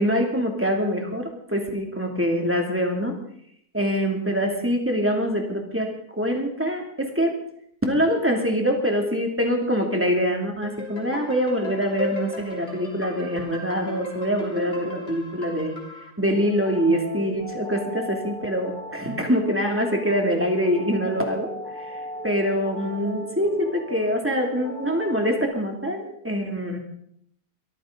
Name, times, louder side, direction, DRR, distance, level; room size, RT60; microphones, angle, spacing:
voice 1, 0.0-3.2 3.7-5.9 6.2-7.4 7.8-15.8 16.2-21.5 22.2-26.8, equal, 10° right, 2 dB, 2.6 m, -24 dB
sound 1, 10.6-16.1, left 2 dB, 45° left, 3.4 m, -36 dB
sound 2, 16.3-25.5, equal, 75° right, 6.9 m, -38 dB
22.5 x 14.5 x 3.9 m, 0.68 s
omnidirectional pair, 1.6 m